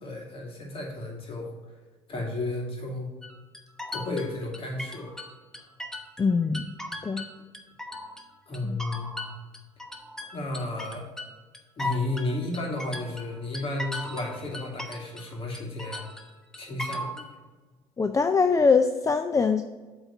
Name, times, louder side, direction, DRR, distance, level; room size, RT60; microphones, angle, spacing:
voice 1, 0.0-1.5 2.1-3.2 3.9-5.2 8.5-9.1 10.3-11.1 11.8-16.1 16.5-17.2, left 2 dB, 45° left, -1 dB, 2.6 m, -33 dB
sound 1, 3.2-6.3 6.5-8.2 8.5-15.3 15.5-17.3, left 1 dB, 5° left, 1.0 m, -37 dB
voice 2, 6.2-6.7 7.0-7.3 8.6-8.8 18.0-19.6, left 5 dB, 25° left, 7 dB, 0.5 m, -23 dB
7.9 x 4.0 x 5.9 m, 1.3 s
supercardioid pair, 70°, 13 cm